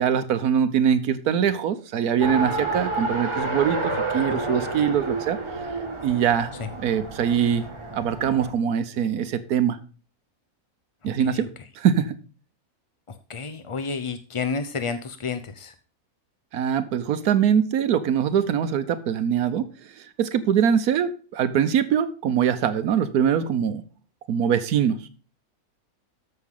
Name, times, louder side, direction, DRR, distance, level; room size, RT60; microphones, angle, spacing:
voice 1, 0.0-5.4 6.0-6.5 6.8-7.7 7.9-9.8 11.0-11.5 11.7-12.2 16.5-19.6 20.0-23.8 24.3-25.0, right 8 dB, 85° right, 9 dB, 1.3 m, -23 dB
Race car auto racing, 2.2-8.5, right 2 dB, 20° right, 1.5 m, -30 dB
voice 2, 11.0-11.4 13.1-15.7, left 5 dB, 50° left, 10 dB, 0.3 m, -31 dB
13.5 x 5.8 x 3.6 m, 0.37 s
omnidirectional pair, 1.5 m